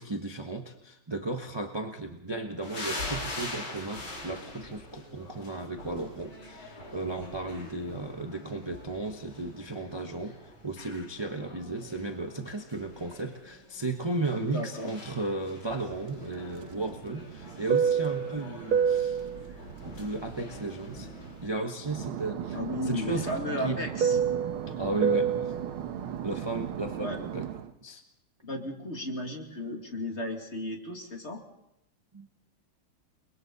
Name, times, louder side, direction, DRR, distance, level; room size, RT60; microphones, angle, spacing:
voice 1, 0.0-10.4 10.6-19.2 19.8-21.1 21.4-23.3 23.6-23.8 24.7-25.5 26.2-27.5 27.8-28.0 32.1-32.3, right 2 dB, 20° right, 4 dB, 0.8 m, -35 dB
sound 1, 2.6-21.5, left 2 dB, 70° left, 5.1 m, -44 dB
voice 2, 14.5-14.9 22.5-24.2 27.0-27.2 28.4-31.4, left 1 dB, 30° left, 2 dB, 2.7 m, -34 dB
Fixed-wing aircraft airplane, 16.1-21.5 21.8-27.7, right 7 dB, 80° right, 1.8 m, -30 dB
30.0 x 22.0 x 4.1 m, 0.79 s
omnidirectional pair, 2.4 m